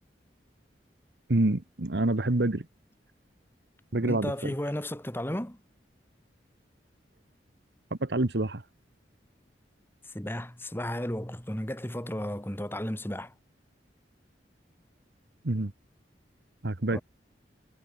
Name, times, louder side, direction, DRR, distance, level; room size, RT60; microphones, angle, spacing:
voice 1, 1.3-2.7 3.9-4.5 8.0-8.6 15.4-15.7 16.6-17.0, right 2 dB, 70° right, 1.3 m, -27 dB
voice 2, 4.0-5.6 10.0-13.3 16.9-17.0, left 1 dB, 15° left, 2.4 m, -34 dB
head